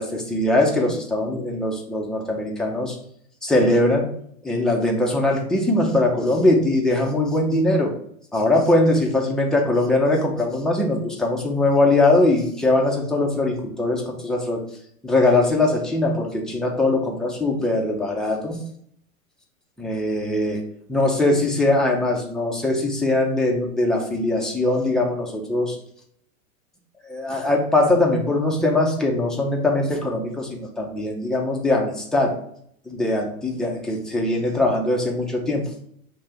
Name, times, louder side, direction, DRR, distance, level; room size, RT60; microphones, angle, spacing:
voice 1, 0.0-2.9 3.4-4.1 4.4-7.9 8.3-14.6 15.0-18.6 19.8-20.6 20.9-25.8 27.1-32.3 32.9-35.6, left 2 dB, ahead, -1 dB, 0.7 m, -21 dB
5.1 x 2.9 x 3.4 m, 0.67 s
hypercardioid pair, 110°, 43 cm